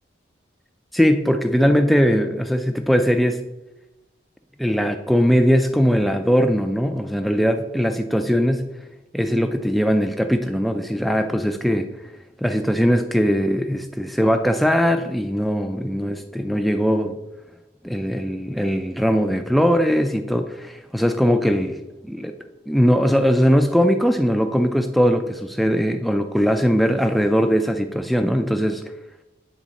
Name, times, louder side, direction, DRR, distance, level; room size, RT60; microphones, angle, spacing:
voice 1, 0.9-3.4 4.6-8.7 9.1-11.9 12.4-17.2 17.8-22.4 22.7-28.8, equal, ahead, 6 dB, 0.3 m, -20 dB
8.6 x 3.6 x 4.0 m, 0.97 s
head